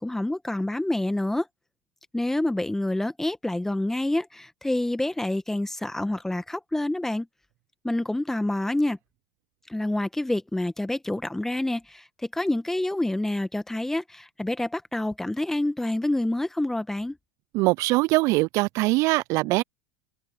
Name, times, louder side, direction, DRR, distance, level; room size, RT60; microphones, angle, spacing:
voice 1, 0.0-1.5 2.1-7.3 7.8-9.0 9.7-17.2, left 1 dB, 5° left, 1.8 m, -27 dB
voice 2, 17.5-19.6, right 22 dB, 50° right, 0.4 m, -22 dB
hypercardioid pair, 85°, 7 cm